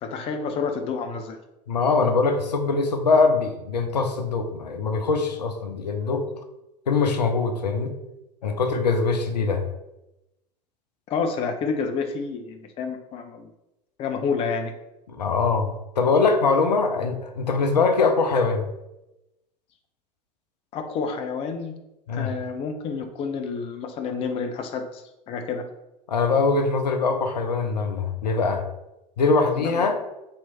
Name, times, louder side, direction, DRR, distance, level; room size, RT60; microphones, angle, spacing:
voice 1, 0.0-1.4 11.1-13.5 14.0-14.7 20.7-21.7 22.1-25.7 29.6-29.9, left 5 dB, 30° left, 5 dB, 0.4 m, -29 dB
voice 2, 1.7-6.3 6.9-7.9 8.4-9.6 15.1-18.7 22.1-22.3 26.1-28.7 29.2-30.0, left 4 dB, 75° left, 5 dB, 0.5 m, -22 dB
3.2 x 3.0 x 4.1 m, 0.94 s
figure-of-eight pair, 80°, 21 cm